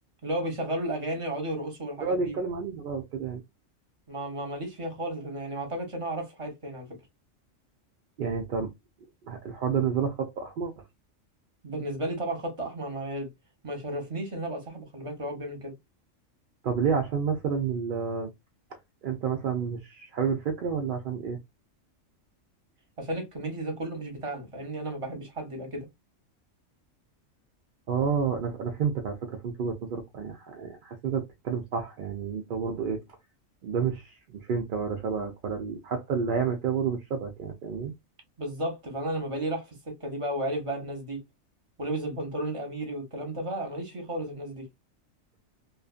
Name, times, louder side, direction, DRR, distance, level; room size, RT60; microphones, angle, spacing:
voice 1, 0.2-2.4 4.1-6.9 11.6-13.3 13.6-15.7 23.0-25.9 38.4-41.2 41.8-44.6, right 1 dB, 30° right, 0.9 m, -33 dB
voice 2, 2.0-3.4 8.2-8.7 9.3-10.7 16.6-18.3 19.0-21.4 27.9-33.0 33.6-37.9, right 6 dB, 65° right, 0.5 m, -30 dB
2.5 x 2.4 x 2.3 m
omnidirectional pair, 1.4 m